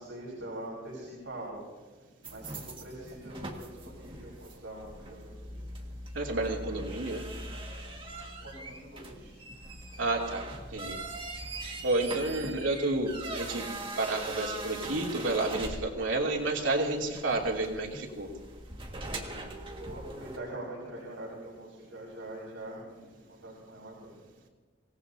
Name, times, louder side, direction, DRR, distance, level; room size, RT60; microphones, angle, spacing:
voice 1, 0.0-1.6 2.3-5.6 8.4-9.3 12.4-12.5 19.4-19.5 19.8-24.1, right 1 dB, 70° right, -4 dB, 5.2 m, -43 dB
sound 1, 2.2-20.4, right 2 dB, 30° right, 1.8 m, -41 dB
voice 2, 6.1-7.2 10.0-11.0 11.8-13.7 14.0-18.3, right 2 dB, 90° right, -1 dB, 2.9 m, -30 dB
25.5 x 18.5 x 2.8 m, 1.4 s
head